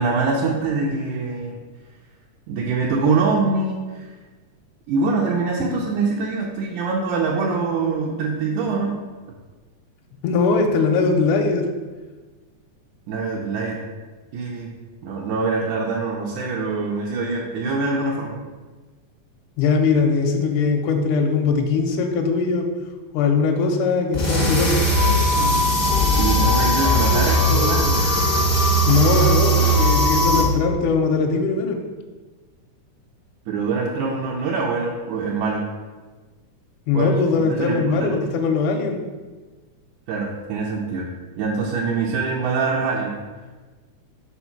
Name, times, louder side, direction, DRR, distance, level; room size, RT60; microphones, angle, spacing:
voice 1, 0.0-1.6 2.5-4.1 4.9-8.9 13.1-13.8 14.3-14.7 15.0-18.4 26.1-28.0 33.5-35.6 36.9-37.1 37.5-38.2 40.1-41.1 41.4-43.2, right 4 dB, 75° right, -3 dB, 2.0 m, -24 dB
voice 2, 10.2-11.7 19.6-22.7 23.1-24.8 28.9-31.8 36.9-39.0, left 4 dB, 80° left, 2 dB, 2.0 m, -20 dB
sound 1, 24.1-30.4, equal, 40° left, 0.5 m, -18 dB
5.0 x 4.2 x 5.8 m, 1.3 s
omnidirectional pair, 3.6 m